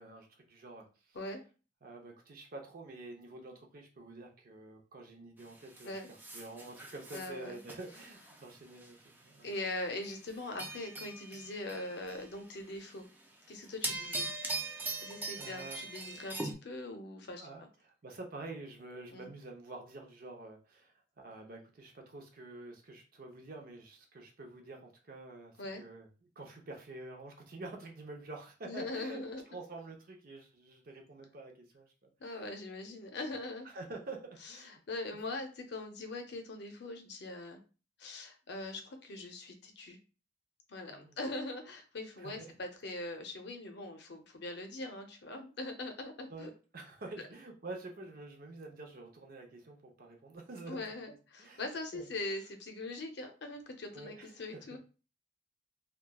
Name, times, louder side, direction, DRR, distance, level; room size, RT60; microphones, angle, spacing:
voice 1, 0.0-1.2 1.8-9.5 15.4-15.8 17.4-32.5 33.6-34.8 40.9-41.2 42.2-42.5 46.3-52.1 53.9-54.8, right 2 dB, 50° right, 2 dB, 0.6 m, -48 dB
sound 1, 5.4-9.1 9.5-9.7 10.0-12.5 12.8-13.3 13.6-16.5, right 3 dB, 10° right, 0.4 m, -41 dB
voice 2, 7.1-7.6 9.4-13.0 13.5-14.3 15.0-17.7 19.1-19.3 25.6-25.8 28.6-29.4 32.2-33.7 34.6-37.6 38.0-40.0 40.7-46.5 50.7-54.8, left 2 dB, 65° left, 5 dB, 0.6 m, -41 dB
2.9 x 2.3 x 2.2 m, 0.34 s
head